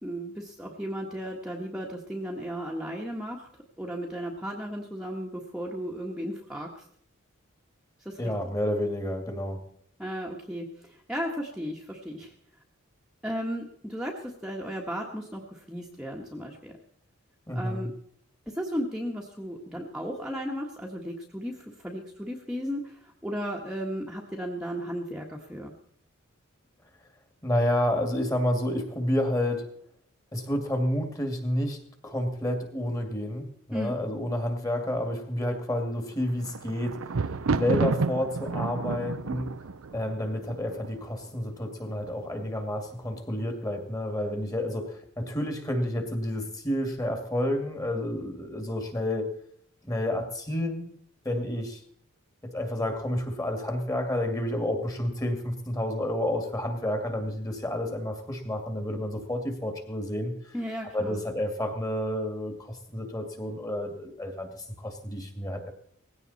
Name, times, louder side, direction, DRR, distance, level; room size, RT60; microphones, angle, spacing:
voice 1, 0.0-3.5 3.8-6.9 8.0-8.2 10.0-12.3 13.2-16.7 17.5-17.9 18.5-25.7 33.7-34.0 60.5-61.2, equal, 5° right, -2 dB, 1.5 m, -35 dB
voice 2, 8.2-9.6 17.5-17.9 27.4-29.6 30.3-37.0 37.6-39.5 39.9-49.3 49.8-50.9 51.2-51.8 52.4-60.5 60.9-65.7, left 1 dB, 15° left, 5 dB, 2.3 m, -30 dB
Thunder, 36.1-41.3 42.0-42.5 42.8-42.9, right 4 dB, 80° right, 0.7 m, -31 dB
19.0 x 16.0 x 4.2 m, 0.64 s
head